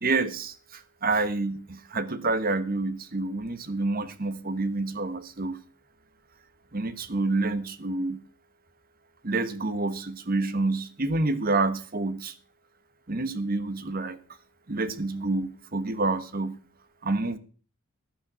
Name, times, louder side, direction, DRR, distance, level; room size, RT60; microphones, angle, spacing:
voice 1, 0.0-5.6 6.7-8.2 9.2-12.3 13.1-14.2 14.7-16.6 17.0-17.4, right 3 dB, 45° right, 13 dB, 1.2 m, -28 dB
11.5 x 9.2 x 6.1 m, 0.39 s
head